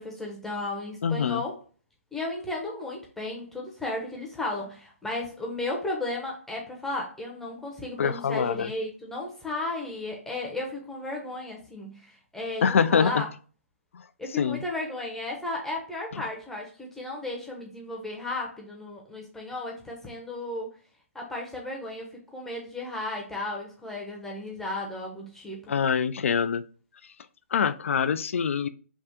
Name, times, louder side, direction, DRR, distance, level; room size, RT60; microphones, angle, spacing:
voice 1, 0.0-1.6 2.1-13.3 14.2-20.7 21.1-25.7, left 2 dB, 5° left, -1 dB, 0.7 m, -34 dB
voice 2, 1.0-1.4 8.0-8.7 12.6-13.3 13.9-14.0 14.4-14.6 16.1-16.2 25.7-26.6 27.5-28.7, left 6 dB, 65° left, 14 dB, 0.4 m, -25 dB
3.5 x 2.4 x 4.2 m, 0.37 s
hypercardioid pair, 145°, 8 cm